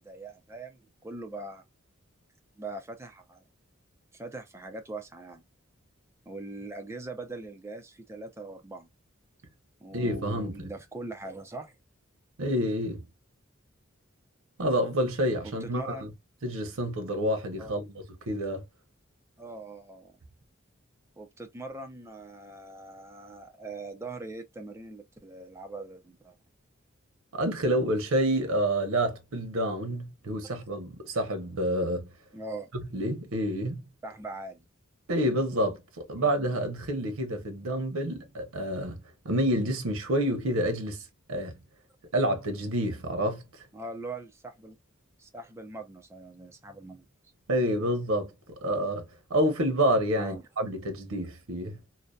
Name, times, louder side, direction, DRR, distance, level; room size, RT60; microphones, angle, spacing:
voice 1, 0.0-1.6 2.6-3.4 4.1-5.4 6.3-8.9 9.8-11.8 15.4-16.1 17.6-17.7 19.4-20.2 21.2-26.3 32.3-32.7 34.0-34.7 36.2-36.4 43.7-44.8 45.2-47.0 50.2-50.4, right 2 dB, 15° right, 0.4 m, -41 dB
voice 2, 9.9-10.7 12.4-13.0 14.6-16.1 16.4-17.9 18.3-18.6 27.3-32.1 32.7-33.8 35.1-41.0 41.3-41.5 42.1-43.5 47.5-48.3 48.6-51.8, right 1 dB, 85° right, 0.7 m, -28 dB
2.6 x 2.1 x 2.2 m
head